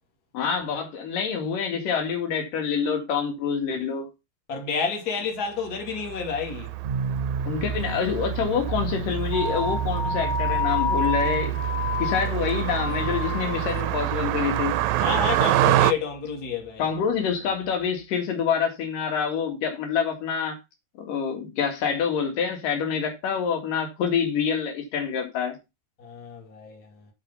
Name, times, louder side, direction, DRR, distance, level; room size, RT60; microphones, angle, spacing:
voice 1, 0.3-4.1 7.5-11.6 12.0-14.8 16.8-20.6 21.0-25.6, left 7 dB, 80° left, 3.6 m, -26 dB
voice 2, 4.5-6.7 15.0-16.9 26.0-27.1, left 6 dB, 30° left, 2.7 m, -30 dB
Car passing by, 5.8-15.9, right 15 dB, 80° right, 1.8 m, -27 dB
sound 1, 6.8-18.0, right 3 dB, 25° right, 1.2 m, -36 dB
sound 2, 9.3-13.9, left 5 dB, 55° left, 0.9 m, -29 dB
10.5 x 5.1 x 5.5 m
omnidirectional pair, 3.8 m